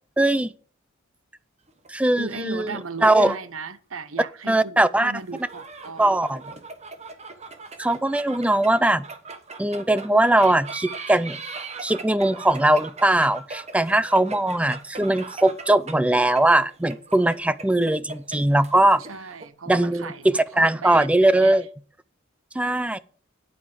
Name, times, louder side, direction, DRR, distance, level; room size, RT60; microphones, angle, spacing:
voice 1, 0.2-0.5 1.9-2.7 3.0-3.3 4.5-5.1 6.0-6.4 7.8-9.0 9.6-11.4 11.8-19.0 19.7-21.6 22.5-23.0, right 1 dB, 5° right, 0.4 m, -20 dB
sound 1, 1.7-3.2 3.5-3.6 5.2-19.5, right 4 dB, 35° right, 1.2 m, -40 dB
voice 2, 2.2-6.1 19.1-20.3 20.5-21.6, right 4 dB, 85° right, 0.9 m, -36 dB
9.3 x 8.4 x 4.9 m
head